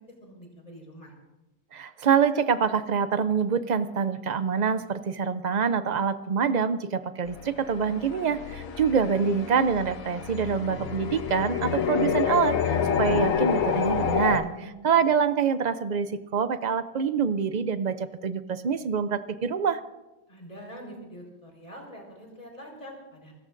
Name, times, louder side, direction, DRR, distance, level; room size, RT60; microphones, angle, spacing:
voice 1, 0.2-1.1 8.4-8.6 14.4-14.9 20.3-23.3, equal, 25° left, 0 dB, 4.6 m, -45 dB
voice 2, 1.7-8.4 8.8-19.8, right 6 dB, 55° right, 12 dB, 0.4 m, -25 dB
sound 1, 7.3-14.4, left 7 dB, 70° left, 1.4 m, -28 dB
28.5 x 14.5 x 2.6 m, 1.0 s
omnidirectional pair, 1.5 m